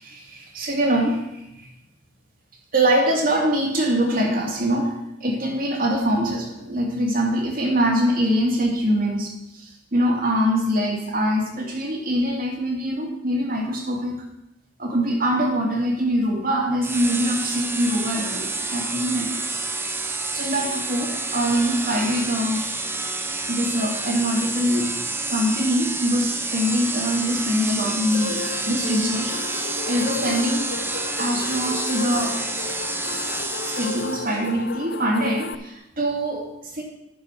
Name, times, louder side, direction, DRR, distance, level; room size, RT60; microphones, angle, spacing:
voice 1, 0.0-1.7 2.7-4.9 5.2-14.2 14.8-22.7 23.5-24.9 25.3-30.7 31.2-32.4 33.6-36.8, equal, 50° right, 0 dB, 2.5 m, -24 dB
sound 1, 16.8-34.4, right 3 dB, 15° right, 0.8 m, -29 dB
sound 2, 28.1-35.6, left 5 dB, 65° left, 0.5 m, -33 dB
10.5 x 6.8 x 6.0 m, 0.88 s
head